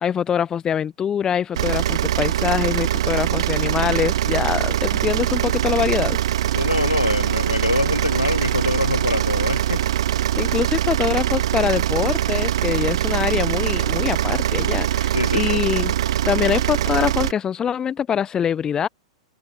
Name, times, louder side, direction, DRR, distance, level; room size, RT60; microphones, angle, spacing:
voice 1, 0.0-6.2 10.4-16.0 16.3-18.9, left 8 dB, 20° left, 0.8 m, -24 dB
sound 1, 1.5-17.3, right 12 dB, 60° right, 2.1 m, -22 dB
voice 2, 6.5-9.8 15.1-15.6, left 2 dB, 85° left, 1.3 m, -24 dB
figure-of-eight pair, 100°, 3 cm